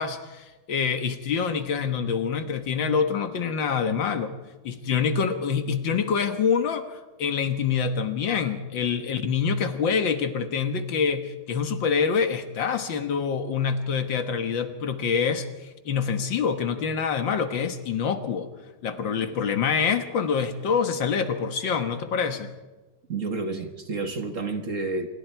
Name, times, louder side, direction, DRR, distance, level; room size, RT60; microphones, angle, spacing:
voice 1, 0.0-4.3 4.6-15.5 15.9-18.5 18.8-22.5, left 6 dB, 70° left, 9 dB, 2.1 m, -26 dB
voice 2, 23.1-25.1, right 3 dB, 45° right, 7 dB, 1.7 m, -30 dB
26.5 x 22.5 x 4.6 m, 1.2 s
omnidirectional pair, 2.1 m